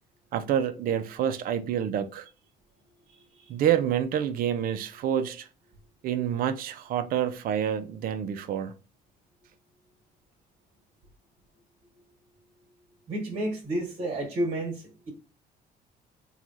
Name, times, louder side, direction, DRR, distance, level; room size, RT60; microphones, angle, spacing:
voice 1, 0.3-2.3 3.5-5.5 6.0-8.7, right 9 dB, 60° right, 0.4 m, -28 dB
voice 2, 13.1-15.1, right 1 dB, 40° right, 1.2 m, -31 dB
3.0 x 2.3 x 2.5 m
cardioid pair, 110°, 17 cm